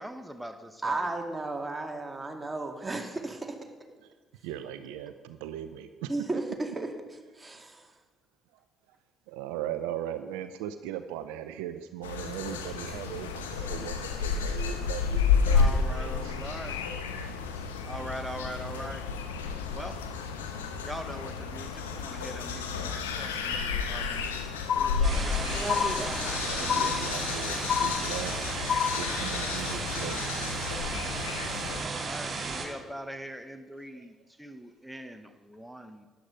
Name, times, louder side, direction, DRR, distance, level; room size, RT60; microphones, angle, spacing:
voice 1, 0.0-1.1 15.5-16.8 17.6-19.0 19.7-20.0 20.8-24.3 24.7-27.6 31.7-36.1, equal, 5° right, 7 dB, 1.0 m, -42 dB
voice 2, 0.8-3.6 6.1-6.9 7.3-7.9 25.1-25.2 25.6-26.5, right 2 dB, 20° right, 3 dB, 2.2 m, -34 dB
voice 3, 4.0-6.1 8.5-9.0 9.3-16.4 24.5-24.6 26.3-30.2 33.9-34.1 35.0-35.1, right 10 dB, 75° right, 11 dB, 0.5 m, -39 dB
sound 1, 12.0-31.8, left 5 dB, 85° left, 1.0 m, -31 dB
sound 2, 24.7-25.4 25.7-26.4 26.7-27.4 27.7-28.4 28.7-29.4, left 8 dB, 55° left, 0.4 m, -29 dB
sound 3, 25.0-32.7, right 4 dB, 45° right, 3.0 m, -35 dB
12.5 x 10.0 x 5.1 m, 1.3 s
figure-of-eight pair, 45°, 0 cm